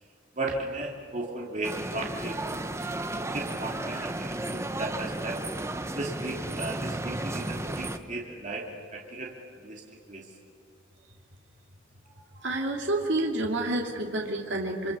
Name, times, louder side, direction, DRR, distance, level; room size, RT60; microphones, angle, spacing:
voice 1, 0.4-2.6 3.1-5.4 5.9-9.3 9.6-9.8 10.1-10.2, right 2 dB, 40° right, -1 dB, 2.7 m, -35 dB
sound 1, 1.6-8.0, right 1 dB, 15° right, 1.0 m, -33 dB
voice 2, 12.4-14.9, right 2 dB, 65° right, 1 dB, 2.5 m, -29 dB
26.5 x 26.0 x 6.9 m, 2.4 s
head